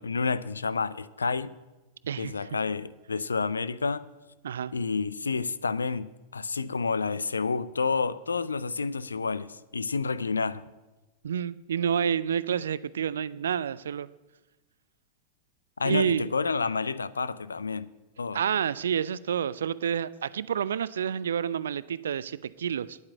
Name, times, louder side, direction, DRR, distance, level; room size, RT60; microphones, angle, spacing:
voice 1, 0.0-1.5 2.2-4.0 4.7-10.6 15.8-17.9 18.2-18.4, left 4 dB, 75° left, 0.5 m, -29 dB
voice 2, 2.0-2.5 4.4-4.7 11.2-14.1 15.8-16.2 18.3-23.0, right 8 dB, 65° right, 0.4 m, -29 dB
9.7 x 8.6 x 8.5 m
figure-of-eight pair, 90°, 0 cm